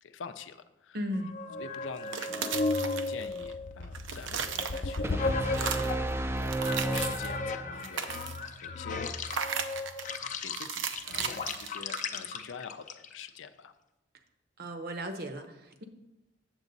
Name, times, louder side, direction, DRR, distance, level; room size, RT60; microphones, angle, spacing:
voice 1, 0.0-1.0 1.2-1.3 1.6-8.1 8.6-9.2 10.4-13.7, left 6 dB, 90° left, 11 dB, 0.5 m, -46 dB
voice 2, 0.9-1.4 14.6-15.8, equal, 55° right, 7 dB, 0.8 m, -36 dB
sound 1, 1.1-6.1 6.6-13.3, left 3 dB, 40° left, 0.5 m, -35 dB
sound 2, 2.0-3.5 3.8-5.1 5.5-6.0 6.4-7.4 7.7-8.5 9.3-10.1 10.6-12.3, right 6 dB, 85° right, 0.6 m, -36 dB
sound 3, 5.0-8.0, right 2 dB, 15° right, 0.4 m, -32 dB
8.0 x 7.3 x 4.0 m, 1.0 s
head